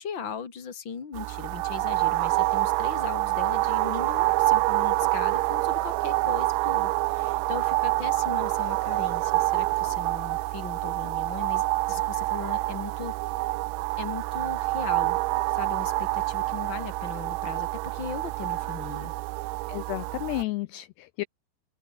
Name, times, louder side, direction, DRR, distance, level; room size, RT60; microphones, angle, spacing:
voice 1, 0.0-13.1 14.0-15.2 15.5-19.1, left 6 dB, 30° left, 2.9 m, -38 dB
sound 1, 1.1-20.4, right 20 dB, 85° right, 3.2 m, -27 dB
voice 2, 19.7-21.2, left 20 dB, 80° left, 2.4 m, -32 dB
open air
omnidirectional pair, 5.3 m